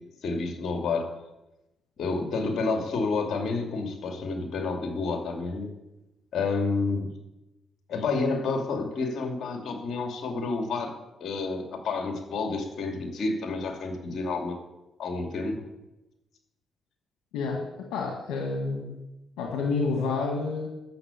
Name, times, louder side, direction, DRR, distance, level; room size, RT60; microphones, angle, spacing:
voice 1, 0.2-1.1 2.0-5.7 6.3-7.1 7.9-10.9 11.2-14.6 15.0-15.7, left 3 dB, 65° left, 3 dB, 2.6 m, -29 dB
voice 2, 17.3-17.7 17.9-19.0 19.4-20.7, left 4 dB, 85° left, 0 dB, 1.7 m, -29 dB
12.0 x 6.8 x 8.4 m, 0.97 s
supercardioid pair, 65°, 0 cm